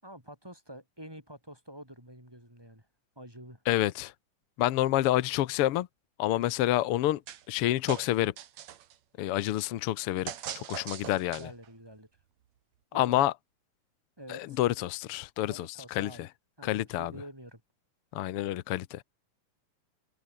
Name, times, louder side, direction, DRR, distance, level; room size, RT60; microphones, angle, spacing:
voice 1, 0.0-2.9 3.2-3.6 6.3-6.5 11.3-12.1 12.9-13.3 14.2-14.6 15.5-16.3 16.6-17.6, equal, 5° right, 7.0 m, -48 dB
voice 2, 3.7-4.1 4.6-5.9 6.2-7.2 7.5-8.3 9.2-11.5 12.9-13.3 14.3-16.3 16.6-17.1 18.1-19.0, left 14 dB, 70° left, 1.4 m, -28 dB
sound 1, 7.3-7.6 7.9-9.0 10.3-11.7, right 10 dB, 65° right, 2.7 m, -40 dB
open air
omnidirectional pair, 3.6 m